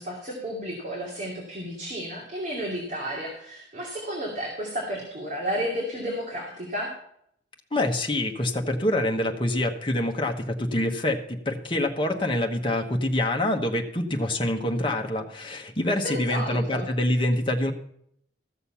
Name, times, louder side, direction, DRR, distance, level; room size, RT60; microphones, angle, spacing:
voice 1, 0.0-6.9 16.0-16.9, equal, 45° right, -3 dB, 2.6 m, -32 dB
voice 2, 7.7-17.7, left 1 dB, 30° left, 2 dB, 1.2 m, -26 dB
14.5 x 6.7 x 5.6 m, 0.70 s
head